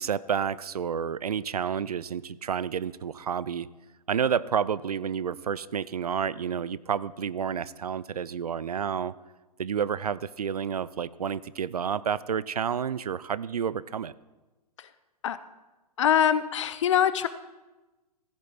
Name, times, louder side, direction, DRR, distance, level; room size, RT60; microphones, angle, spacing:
voice 1, 0.0-3.7 4.1-9.1 9.6-14.1, right 7 dB, 70° right, 19 dB, 0.4 m, -30 dB
voice 2, 16.0-17.3, left 9 dB, 50° left, 14 dB, 0.6 m, -23 dB
15.0 x 6.9 x 4.5 m, 1.1 s
figure-of-eight pair, 115°, 20 cm